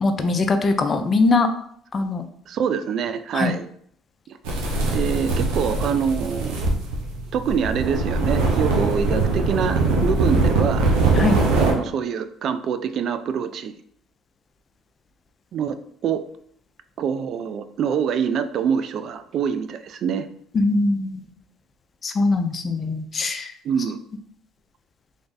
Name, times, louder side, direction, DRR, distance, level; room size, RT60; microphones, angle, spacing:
voice 1, 0.0-1.5 1.9-2.3 3.3-3.5 11.2-11.4 20.5-21.3 22.0-23.5, left 3 dB, 40° left, 7 dB, 0.5 m, -21 dB
voice 2, 2.5-3.7 4.3-4.4 4.9-6.6 7.3-10.9 11.5-13.7 15.5-15.8 16.0-16.2 17.0-20.3 23.6-24.0, right 7 dB, 60° right, 10 dB, 0.3 m, -25 dB
sound 1, 4.4-11.7, right 3 dB, 85° right, 0.8 m, -22 dB
3.4 x 2.6 x 3.9 m, 0.64 s
supercardioid pair, 80°, 0 cm